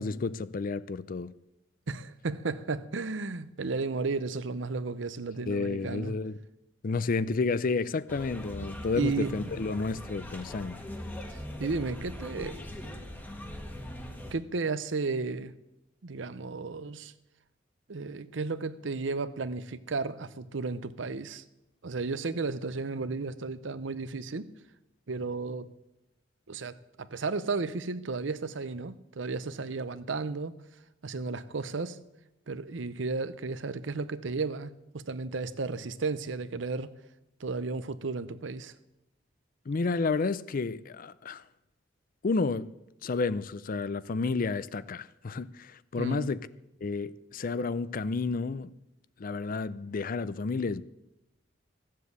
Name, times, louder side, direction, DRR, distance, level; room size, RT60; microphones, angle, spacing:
voice 1, 0.0-1.3 5.5-6.4 6.8-10.8 39.7-41.4 42.2-42.7 43.0-46.4 46.8-48.7 49.2-50.8, left 4 dB, 45° left, 0.5 m, -31 dB
voice 2, 1.9-6.1 9.0-9.5 11.3-12.6 14.3-15.5 16.0-17.1 17.9-21.4 21.8-24.5 25.1-25.7 26.5-30.6 31.0-32.0 32.5-36.9 37.4-38.7 45.9-46.4, right 4 dB, 70° right, 0.7 m, -33 dB
sound 1, 8.1-14.3, left 1 dB, 10° left, 1.4 m, -40 dB
14.5 x 7.6 x 8.1 m
head